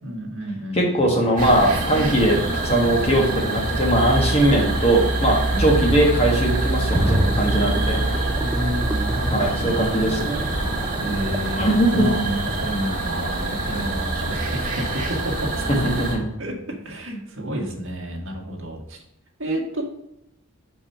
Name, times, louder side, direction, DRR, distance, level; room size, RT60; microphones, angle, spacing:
voice 1, 0.0-1.2 5.5-5.8 8.4-10.1 11.0-16.1 16.4-19.0 19.4-19.8, right 1 dB, 55° right, 0 dB, 1.7 m, -30 dB
voice 2, 0.7-8.0 9.3-10.5 11.5-12.1 15.7-15.8 16.1-16.2, right 1 dB, 25° left, 0 dB, 1.4 m, -20 dB
sound 1, 1.4-16.1, right 2 dB, 35° right, 1.9 m, -25 dB
sound 2, 6.9-12.7 13.1-13.2, right 1 dB, 10° right, 0.4 m, -29 dB
5.5 x 5.4 x 5.6 m, 0.84 s
head